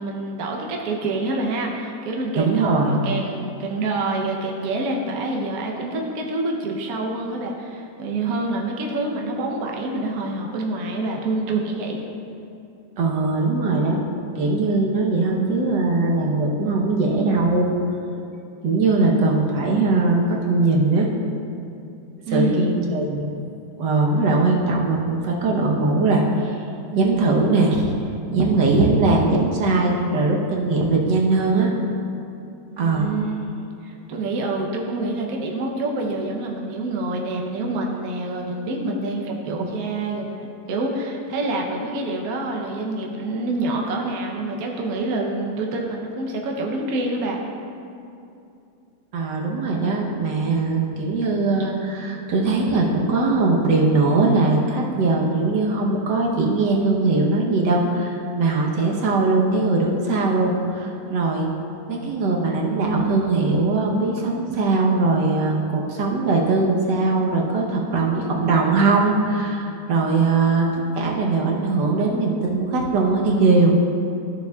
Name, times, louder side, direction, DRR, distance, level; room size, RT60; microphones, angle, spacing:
voice 1, 0.0-12.0 22.3-22.6 32.7-47.4, right 2 dB, 65° right, 0 dB, 1.2 m, -27 dB
voice 2, 2.3-3.0 13.0-14.0 14.3-17.7 18.6-21.1 22.3-23.3 23.8-26.6 26.9-27.9 28.3-31.7 32.8-33.1 49.1-61.5 61.9-73.7, right 3 dB, 85° right, -1 dB, 1.6 m, -20 dB
13.5 x 7.0 x 2.3 m, 2.6 s
omnidirectional pair, 1.8 m